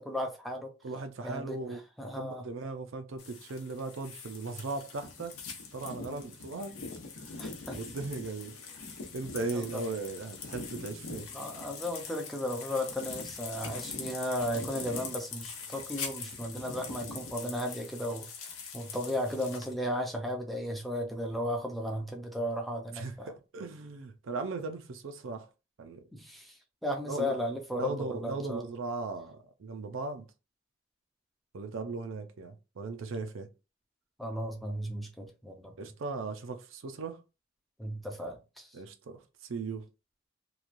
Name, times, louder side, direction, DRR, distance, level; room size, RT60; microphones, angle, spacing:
voice 1, 0.0-0.7 1.2-2.4 6.1-6.2 7.4-7.8 9.5-9.8 11.3-23.3 26.1-26.6 26.8-28.6 34.2-35.7 37.8-38.8, equal, ahead, 0.4 m, -35 dB
voice 2, 0.8-1.8 2.2-5.3 5.7-6.8 7.3-7.4 7.8-8.9 9.1-11.3 22.9-25.5 25.8-26.0 27.1-27.4 27.7-30.3 31.5-33.5 35.8-37.2 38.7-39.8, right 3 dB, 65° right, 0.5 m, -38 dB
sound 1, 3.2-19.7, left 5 dB, 90° left, 0.8 m, -43 dB
3.0 x 2.3 x 2.5 m
head